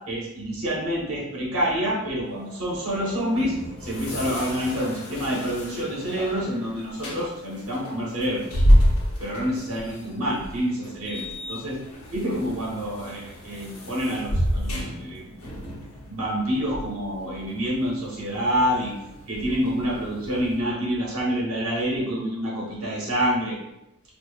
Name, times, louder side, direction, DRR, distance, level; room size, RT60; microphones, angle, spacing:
voice 1, 0.1-3.5 3.8-8.5 9.2-11.2 11.5-11.8 12.1-15.2 16.1-18.9 19.3-23.6, equal, 70° right, -4 dB, 1.3 m, -27 dB
sound 1, 2.3-20.6, equal, 85° left, 1.1 m, -29 dB
4.4 x 2.8 x 2.4 m, 0.92 s
head